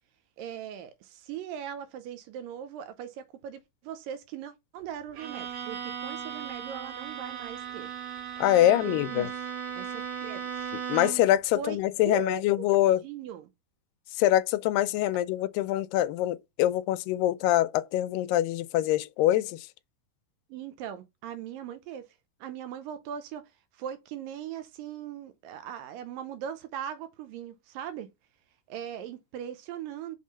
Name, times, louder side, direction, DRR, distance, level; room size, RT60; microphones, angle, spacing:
voice 1, 0.4-7.9 8.4-9.4 9.7-10.7 11.6-11.8 12.0-12.6 13.0-13.5 20.5-22.1 22.4-23.4 23.7-28.1 28.7-30.2, right 8 dB, 90° right, 2.5 m, -39 dB
Bowed string instrument, 5.1-11.4, right 8 dB, 70° right, 3.0 m, -37 dB
voice 2, 8.4-9.3 10.9-13.0 14.2-19.7, left 13 dB, 85° left, 2.2 m, -24 dB
5.5 x 3.7 x 5.3 m
omnidirectional pair, 3.9 m